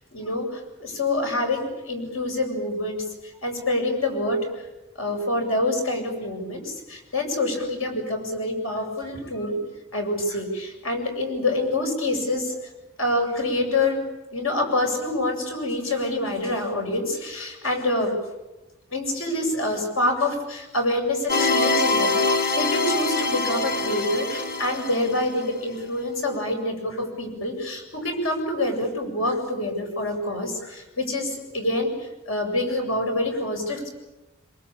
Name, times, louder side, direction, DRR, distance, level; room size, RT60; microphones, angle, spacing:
voice 1, 0.1-3.0 3.4-4.4 5.0-9.5 9.9-12.5 13.0-14.0 14.3-18.1 18.9-33.9, left 1 dB, 85° left, 4 dB, 7.7 m, -26 dB
sound 1, 21.3-25.4, left 3 dB, 45° left, 1.7 m, -24 dB
26.5 x 23.5 x 8.8 m, 1.0 s
head